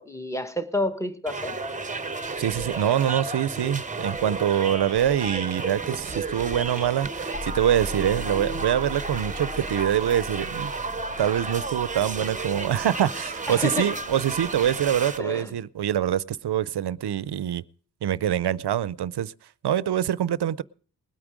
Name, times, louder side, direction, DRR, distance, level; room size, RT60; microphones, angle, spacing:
voice 1, 0.0-1.6 13.5-14.0 15.2-15.5, left 1 dB, 5° left, 1.1 m, -29 dB
sound 1, 1.3-15.2, right 3 dB, 20° right, 0.7 m, -32 dB
voice 2, 2.4-10.7 11.2-17.6 18.0-19.3 19.6-20.6, right 10 dB, 75° right, 0.6 m, -25 dB
sound 2, 7.3-12.9, left 2 dB, 65° left, 1.5 m, -40 dB
sound 3, 8.0-14.8, left 1 dB, 85° left, 7.0 m, -54 dB
20.0 x 8.9 x 4.9 m
wide cardioid pair, 135°, 40 cm